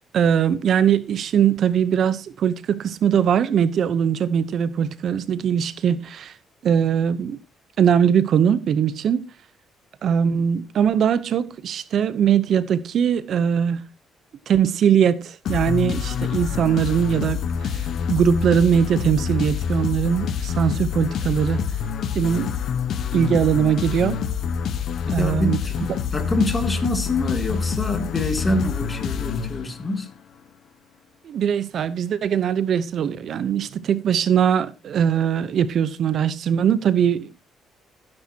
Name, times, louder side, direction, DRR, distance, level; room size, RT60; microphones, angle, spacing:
voice 1, 0.1-6.4 6.6-7.4 7.8-9.3 10.0-13.8 14.5-21.6 22.1-22.5 23.1-24.2 25.1-25.6 25.9-26.0 31.2-37.3, right 8 dB, 55° right, 0.8 m, -21 dB
sound 1, 15.4-30.0, left 7 dB, 60° left, 1.1 m, -26 dB
voice 2, 25.0-25.8 26.1-30.1, left 1 dB, 20° left, 2.6 m, -25 dB
16.5 x 9.8 x 2.8 m
cardioid pair, 135°, 0 cm